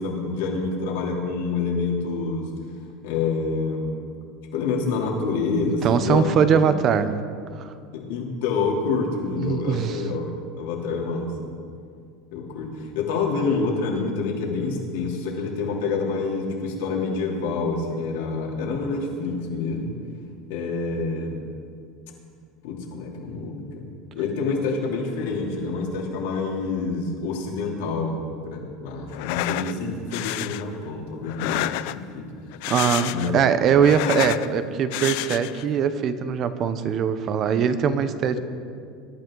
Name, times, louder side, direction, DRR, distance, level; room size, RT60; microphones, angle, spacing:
voice 1, 0.0-2.4 3.0-3.9 4.5-6.8 7.9-10.2 10.6-11.3 12.3-19.9 20.5-21.5 22.6-32.3 33.1-33.3, left 4 dB, 85° left, -2 dB, 3.0 m, -27 dB
voice 2, 5.8-7.1 7.6-7.7 9.4-10.0 32.7-38.4, right 7 dB, 30° right, 12 dB, 0.7 m, -21 dB
sound 1, 29.1-29.7 30.1-30.6 31.3-32.1 32.5-33.4 33.7-34.5 34.9-35.7, left 17 dB, 60° left, 0.4 m, -29 dB
22.0 x 12.0 x 3.9 m, 2.2 s
cardioid pair, 170°, 0 cm